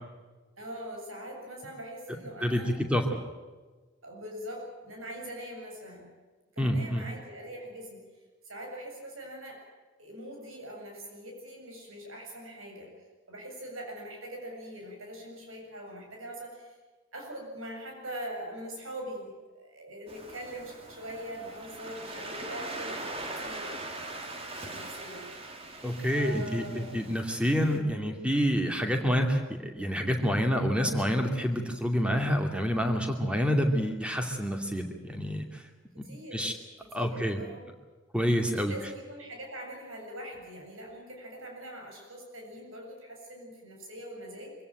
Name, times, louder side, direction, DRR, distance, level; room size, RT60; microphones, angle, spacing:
voice 1, 0.6-2.8 4.0-6.1 6.5-8.0 8.4-9.6 10.0-12.9 13.3-16.7 17.1-23.9 24.6-25.3 26.0-27.0 35.9-36.5 36.8-37.6 38.4-44.6, equal, 80° right, 1 dB, 7.6 m, -42 dB
voice 2, 2.4-3.2 6.6-7.0 25.8-35.6 36.0-36.1 36.3-36.5 36.9-37.4 38.1-38.7, equal, 5° right, 4 dB, 2.6 m, -28 dB
Waves surf, 20.1-27.8, right 2 dB, 30° right, 2.4 m, -41 dB
25.0 x 16.5 x 9.1 m, 1.3 s
head